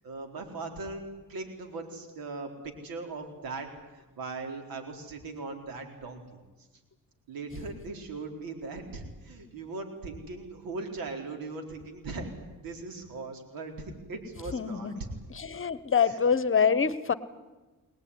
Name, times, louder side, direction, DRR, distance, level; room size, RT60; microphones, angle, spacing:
voice 1, 0.0-3.7 3.9-6.4 7.3-12.3 12.6-14.9 16.1-16.2, right 3 dB, 85° right, 4 dB, 4.2 m, -39 dB
voice 2, 14.5-15.0 15.3-17.1, left 6 dB, 35° left, 15 dB, 1.2 m, -25 dB
22.5 x 20.0 x 9.8 m, 1.2 s
cardioid pair, 75°, 34 cm